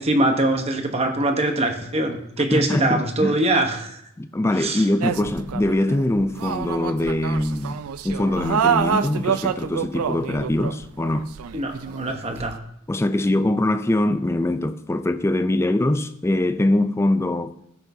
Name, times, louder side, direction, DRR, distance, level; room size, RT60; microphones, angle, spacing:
voice 1, 0.0-4.0 4.6-4.8 11.5-12.6, right 1 dB, 30° right, 0.9 m, -23 dB
voice 2, 2.5-3.6 4.2-11.3 12.9-17.6, left 1 dB, 10° left, 0.3 m, -23 dB
sound 1, 5.0-12.6, right 7 dB, 90° right, 0.4 m, -27 dB
15.5 x 6.8 x 2.7 m
head